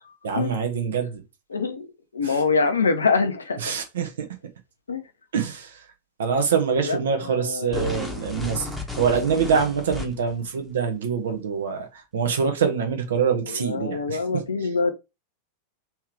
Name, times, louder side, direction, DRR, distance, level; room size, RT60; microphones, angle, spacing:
voice 1, 0.2-1.2 2.2-2.4 3.6-4.3 5.3-5.9 6.2-8.7 9.0-14.7, right 6 dB, 65° right, 1.0 m, -25 dB
voice 2, 1.5-1.9 2.1-3.6 4.9-5.0 6.9-7.0 7.5-7.8 8.3-8.4 13.7-14.9, left 4 dB, 75° left, 0.7 m, -24 dB
sound 1, 7.7-10.4, left 2 dB, ahead, 1.1 m, -34 dB
3.6 x 3.1 x 4.6 m
figure-of-eight pair, 90°, 0 cm